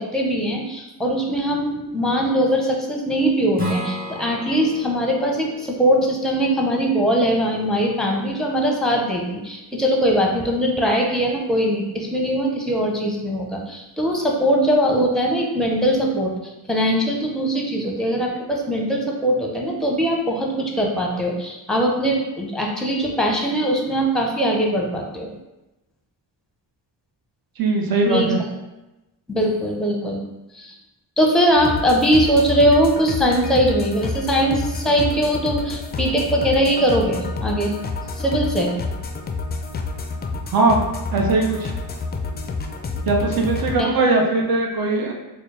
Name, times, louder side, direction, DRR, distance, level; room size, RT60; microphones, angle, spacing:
voice 1, 0.0-16.4 16.7-25.3 28.0-28.3 29.3-30.2 30.5-30.7 31.2-37.7 38.2-38.7 43.8-43.9, equal, ahead, -1 dB, 0.7 m, -21 dB
Strum, 3.5-8.7, left 1 dB, 20° right, 1.2 m, -34 dB
voice 2, 27.6-28.4 40.5-40.8 41.1-41.7 43.1-45.1, right 3 dB, 60° right, 1 dB, 0.7 m, -20 dB
sound 1, 31.6-43.8, left 3 dB, 25° left, 0.4 m, -29 dB
3.9 x 2.2 x 3.2 m, 0.99 s
cardioid pair, 75°, 41 cm